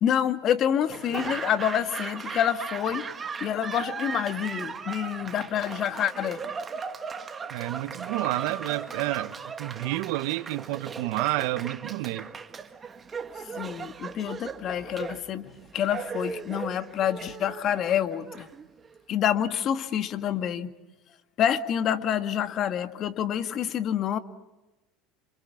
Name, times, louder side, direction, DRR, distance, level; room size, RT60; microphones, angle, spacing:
voice 1, 0.0-3.1 3.4-6.4 13.4-18.5 19.1-20.7 21.4-24.2, left 9 dB, 45° left, 1.8 m, -27 dB
Laughter / Applause, 0.9-19.0, right 5 dB, 25° right, 1.7 m, -37 dB
voice 2, 7.5-12.3, right 18 dB, 70° right, 1.2 m, -30 dB
27.5 x 27.0 x 7.1 m
supercardioid pair, 100°, 0 cm